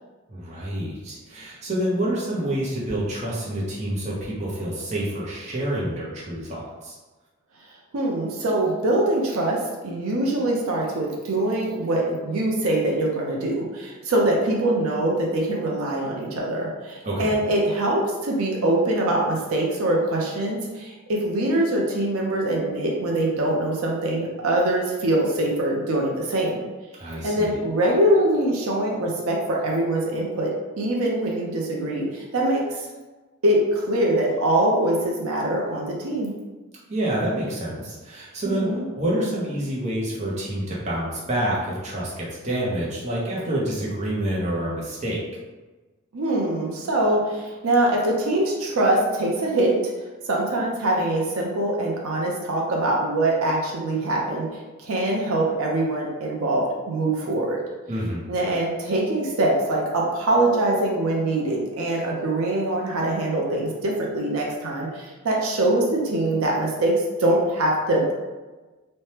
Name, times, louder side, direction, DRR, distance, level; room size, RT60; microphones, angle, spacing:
voice 1, 0.3-6.9 17.0-17.4 27.0-27.6 36.9-45.2 57.9-58.3, right 1 dB, 30° right, -5 dB, 0.6 m, -28 dB
voice 2, 7.9-26.6 27.2-30.5 30.8-32.9 33.4-36.3 38.5-38.8 46.1-49.9 50.3-54.5 54.8-57.6 58.3-68.2, right 1 dB, 80° right, -2 dB, 0.6 m, -23 dB
3.2 x 2.1 x 2.8 m, 1.2 s
head